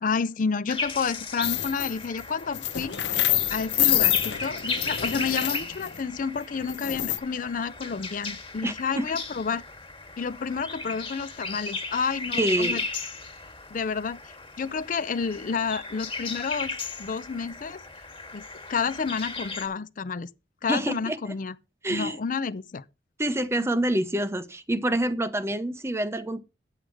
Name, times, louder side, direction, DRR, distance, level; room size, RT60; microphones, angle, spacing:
voice 1, 0.0-3.0 3.5-9.6 10.2-12.8 13.7-14.2 14.6-17.8 18.3-18.4 18.7-20.3 20.6-21.5 21.9-22.8, left 5 dB, 45° left, 0.4 m, -30 dB
sound 1, 0.7-19.7, left 3 dB, 30° left, 1.7 m, -36 dB
sound 2, 1.4-2.0 2.4-6.0 6.7-7.2, left 13 dB, 70° left, 0.8 m, -26 dB
voice 2, 8.6-9.1 12.4-12.8 20.7-21.3 21.8-22.2 23.2-26.4, right 1 dB, 15° right, 0.7 m, -27 dB
9.0 x 7.9 x 4.7 m
head